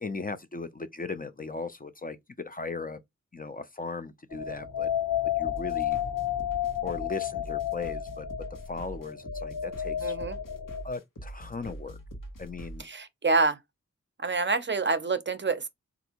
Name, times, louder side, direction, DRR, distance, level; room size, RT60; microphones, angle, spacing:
voice 1, 0.0-2.2 2.4-3.0 3.3-4.9 5.4-6.0 6.8-8.3 8.7-10.2 10.8-12.0 12.4-12.9, left 3 dB, 30° left, 0.5 m, -37 dB
sound 1, 4.3-10.8, left 11 dB, 65° left, 1.0 m, -32 dB
sound 2, 5.4-12.9, right 1 dB, 85° left, 1.1 m, -43 dB
voice 2, 10.0-10.4 12.8-13.6 14.2-15.7, right 3 dB, 35° right, 0.5 m, -27 dB
3.3 x 2.5 x 2.9 m
cardioid pair, 50°, 32 cm